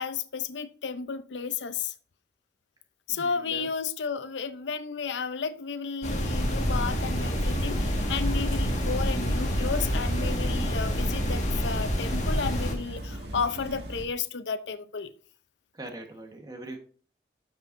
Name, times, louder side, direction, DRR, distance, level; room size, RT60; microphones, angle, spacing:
voice 1, 0.0-1.9 3.1-15.1, left 5 dB, 85° left, 0.6 m, -33 dB
voice 2, 3.1-3.7 15.7-16.8, right 2 dB, 20° right, 1.3 m, -42 dB
sound 1, 6.0-12.7, equal, 40° left, 1.7 m, -28 dB
sound 2, 6.4-14.0, right 1 dB, 70° right, 1.9 m, -37 dB
12.5 x 5.6 x 2.6 m
head